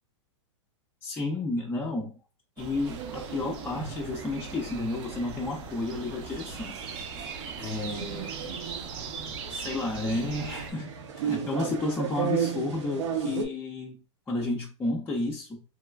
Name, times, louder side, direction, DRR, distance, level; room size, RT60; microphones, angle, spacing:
voice 1, 1.0-2.2 2.6-6.8 7.6-8.3 9.5-10.9 11.1-14.0 14.3-15.6, left 2 dB, 10° left, 0.4 m, -31 dB
sound 1, 2.6-10.7, right 5 dB, 35° right, 0.6 m, -40 dB
sound 2, 2.9-13.4, right 8 dB, 70° right, 0.7 m, -36 dB
3.1 x 2.9 x 2.2 m
hypercardioid pair, 130°, 16 cm